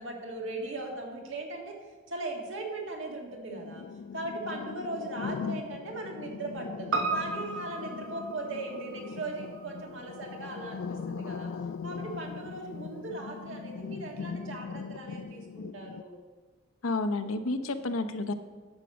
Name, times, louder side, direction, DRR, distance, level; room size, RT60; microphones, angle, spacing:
voice 1, 0.0-1.8 2.1-3.9 4.1-11.5 11.8-16.2, right 2 dB, 65° right, 1 dB, 1.7 m, -38 dB
sound 1, 3.5-16.0, left 5 dB, 65° left, 0.3 m, -40 dB
Piano, 6.9-11.4 11.7-11.8, right 3 dB, 85° right, 1.0 m, -36 dB
voice 2, 16.8-18.3, left 2 dB, 85° left, 10 dB, 0.8 m, -30 dB
9.7 x 6.2 x 7.0 m, 1.4 s
head